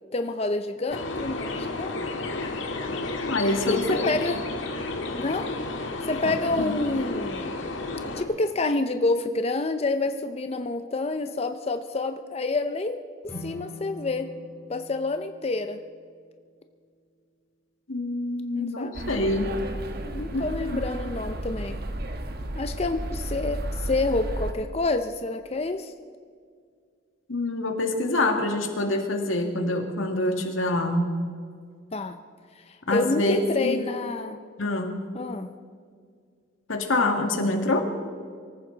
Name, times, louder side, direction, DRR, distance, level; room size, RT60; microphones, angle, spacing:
voice 1, 0.1-2.0 3.7-4.4 5.1-5.5 6.0-7.6 8.2-13.0 13.4-14.3 14.7-15.8 18.5-19.3 20.0-21.8 22.6-25.9 31.9-32.2 32.7-34.4 35.1-35.5, left 2 dB, 30° left, 8 dB, 0.5 m, -28 dB
sound 1, 0.9-8.2, left 3 dB, 75° left, 1.8 m, -32 dB
voice 2, 3.2-4.1 6.3-6.4 6.6-6.8 17.9-19.6 20.3-20.8 27.3-31.0 32.9-33.8 34.6-35.1 36.7-37.8, left 2 dB, 90° left, 4 dB, 2.0 m, -26 dB
sound 2, 13.2-16.5, left 1 dB, 10° left, 2.5 m, -44 dB
sound 3, 18.9-24.5, right 1 dB, 50° right, 1.2 m, -33 dB
24.0 x 14.0 x 3.9 m, 2.1 s
head